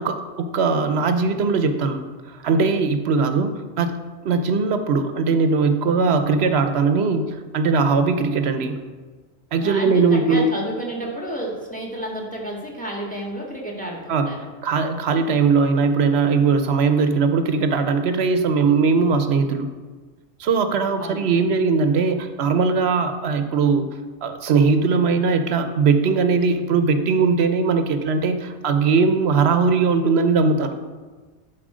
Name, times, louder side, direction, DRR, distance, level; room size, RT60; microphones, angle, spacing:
voice 1, 0.0-2.0 2.4-4.0 4.2-7.3 7.5-8.8 9.5-10.5 14.1-14.3 14.6-19.7 20.4-23.9 24.2-30.7, right 4 dB, 75° right, 8 dB, 1.0 m, -20 dB
voice 2, 9.6-14.4 20.9-21.4, right 1 dB, 5° left, -2 dB, 1.7 m, -31 dB
11.0 x 4.6 x 5.0 m, 1.4 s
omnidirectional pair, 1.1 m